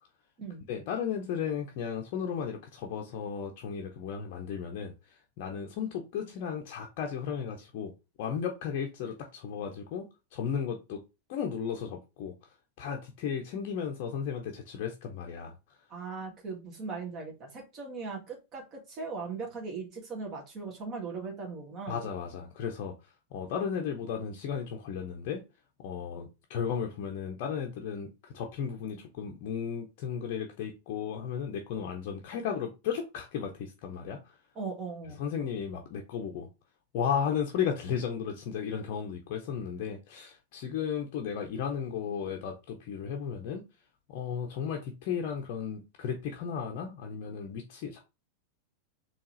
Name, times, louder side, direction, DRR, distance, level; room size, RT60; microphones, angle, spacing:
voice 1, 0.7-7.9 8.2-10.1 10.3-11.0 11.3-12.3 12.8-15.5 21.9-22.9 23.3-25.4 25.8-28.1 28.3-34.3 35.2-36.5 36.9-43.6 44.1-48.0, left 7 dB, 45° left, 2 dB, 0.7 m, -34 dB
voice 2, 15.9-22.0 34.6-35.2, right 4 dB, 35° right, 0 dB, 1.9 m, -39 dB
4.5 x 3.1 x 3.2 m, 0.27 s
figure-of-eight pair, 90°, 0 cm